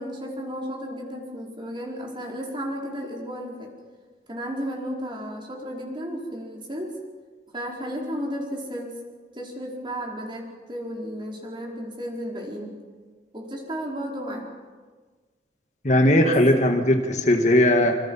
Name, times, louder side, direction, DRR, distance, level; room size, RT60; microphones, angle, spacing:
voice 1, 0.0-3.7 4.3-7.0 7.5-9.0 9.3-12.7 13.3-14.5 16.2-16.4, equal, 25° right, -1 dB, 5.0 m, -33 dB
voice 2, 15.8-18.0, left 1 dB, 40° left, 4 dB, 1.9 m, -18 dB
27.5 x 27.0 x 5.7 m, 1.4 s
head